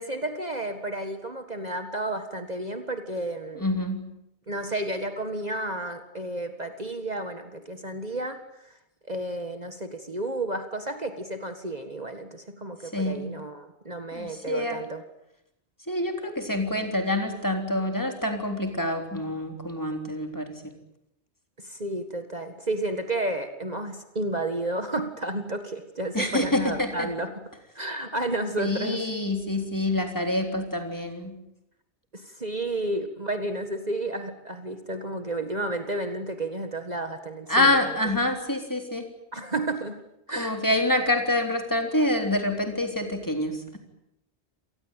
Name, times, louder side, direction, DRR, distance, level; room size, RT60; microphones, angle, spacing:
voice 1, 0.0-3.7 4.5-8.4 9.1-15.0 21.6-27.3 27.8-29.0 32.1-38.0 39.3-40.0 40.3-40.6, right 1 dB, 35° right, 7 dB, 1.9 m, -32 dB
voice 2, 3.6-4.0 12.9-13.3 14.1-14.8 15.9-20.5 26.1-27.1 28.6-31.4 37.5-39.0 40.4-43.8, left 1 dB, 15° left, 4 dB, 3.6 m, -26 dB
28.5 x 19.0 x 9.1 m, 0.81 s
omnidirectional pair, 1.2 m